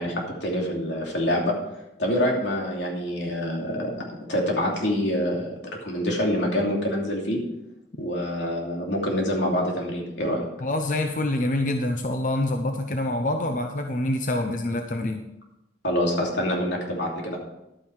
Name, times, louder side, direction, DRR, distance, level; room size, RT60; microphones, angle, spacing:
voice 1, 0.0-1.5 2.0-3.9 4.3-7.4 8.0-10.4 15.8-17.4, equal, 85° left, -1 dB, 2.8 m, -26 dB
voice 2, 10.6-15.3, left 1 dB, 45° left, 5 dB, 0.7 m, -26 dB
11.5 x 9.1 x 4.7 m, 0.89 s
head